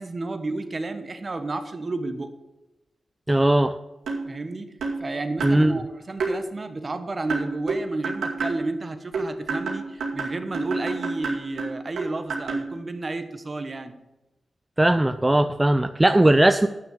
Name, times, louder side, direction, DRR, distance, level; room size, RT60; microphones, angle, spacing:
voice 1, 0.0-2.3 4.2-4.7 5.0-14.0, right 2 dB, 45° right, 9 dB, 1.3 m, -31 dB
voice 2, 3.3-3.7 5.4-5.7 14.8-16.7, right 1 dB, 20° right, 9 dB, 0.5 m, -18 dB
sound 1, 4.1-4.3 4.8-5.0 5.4-5.6 6.2-6.3 7.3-8.6 9.1-12.7, right 3 dB, 85° right, 2.2 m, -28 dB
9.2 x 6.4 x 8.3 m, 1.0 s
supercardioid pair, 40°, 0 cm